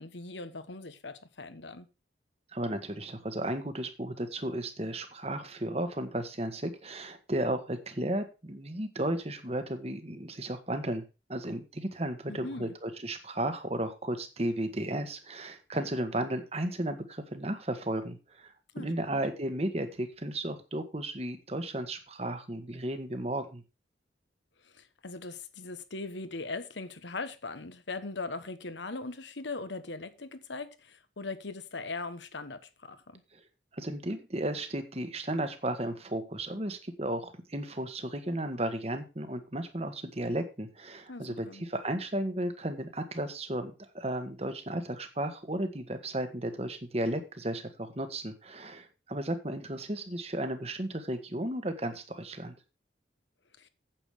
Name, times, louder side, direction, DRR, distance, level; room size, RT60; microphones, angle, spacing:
voice 1, 0.0-1.9 12.3-12.7 18.7-19.2 24.7-33.2 41.1-41.6 53.6-53.7, left 3 dB, 85° left, 1.3 m, -40 dB
voice 2, 2.5-11.0 11.3-23.6 33.3-33.4 33.7-52.5, right 1 dB, 35° right, 1.4 m, -34 dB
8.9 x 8.4 x 4.9 m
head